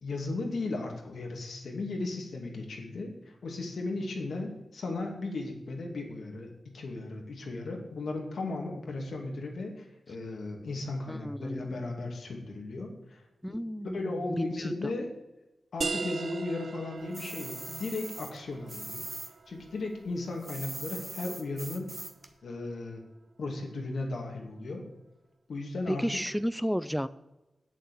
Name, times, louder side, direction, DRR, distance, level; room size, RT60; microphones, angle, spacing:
voice 1, 0.0-3.1 3.4-13.2 13.5-13.6 13.9-15.1 15.7-19.0 19.5-21.9 22.4-23.0 23.4-24.9 25.5-26.1, left 2 dB, 75° left, 1 dB, 2.4 m, -36 dB
voice 2, 11.1-11.9 13.4-14.1 14.5-14.7 25.9-27.1, equal, ahead, 14 dB, 0.4 m, -32 dB
sound 1, 15.8-21.2, right 4 dB, 60° right, 0.5 m, -40 dB
sound 2, 17.1-19.3 19.6-22.3, right 2 dB, 20° right, 1.2 m, -41 dB
8.5 x 7.4 x 7.1 m, 1.0 s
wide cardioid pair, 90°, 0 cm